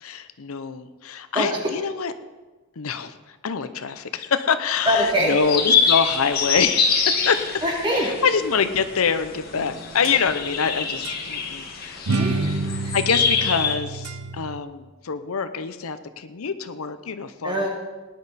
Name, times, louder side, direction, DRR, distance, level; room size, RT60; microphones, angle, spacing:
voice 1, 0.0-2.1 2.8-6.9 7.3-7.5 8.0-12.0 12.9-17.7, left 6 dB, 75° left, 11 dB, 0.7 m, -25 dB
voice 2, 1.3-1.7 4.9-5.5 7.6-8.1 12.1-13.0 17.4-17.7, equal, 20° right, -2 dB, 2.6 m, -24 dB
sound 1, 4.9-13.7, left 6 dB, 45° left, 1.5 m, -25 dB
sound 2, 9.5-10.7 11.0-11.2 12.1-14.6, right 3 dB, 85° right, 0.8 m, -29 dB
18.0 x 10.0 x 4.1 m, 1.2 s
head